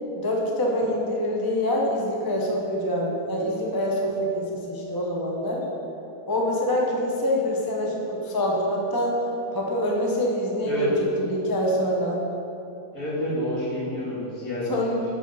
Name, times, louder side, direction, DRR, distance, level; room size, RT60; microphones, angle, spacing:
voice 1, 0.2-5.6 6.3-9.2 9.5-12.2 14.7-15.1, equal, 25° left, -2 dB, 0.5 m, -25 dB
voice 2, 12.9-14.7, equal, 55° left, -8 dB, 2.4 m, -28 dB
8.3 x 4.2 x 5.3 m, 3.0 s
omnidirectional pair, 1.7 m